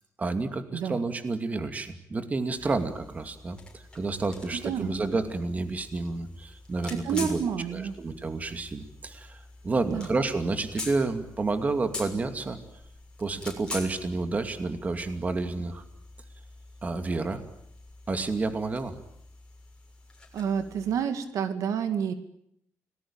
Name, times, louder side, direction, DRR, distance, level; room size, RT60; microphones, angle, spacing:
voice 1, 0.2-7.4 7.7-12.6 13.2-15.8 16.8-17.4 18.1-18.9, right 3 dB, 25° right, 8 dB, 2.5 m, -30 dB
voice 2, 0.7-1.0 4.5-4.9 6.9-7.9 9.9-10.1 20.3-22.1, right 7 dB, 80° right, 9 dB, 2.3 m, -29 dB
sound 1, 2.6-21.0, left 2 dB, 15° left, 6.5 m, -45 dB
30.0 x 20.0 x 8.9 m, 0.73 s
cardioid pair, 140°, 6 cm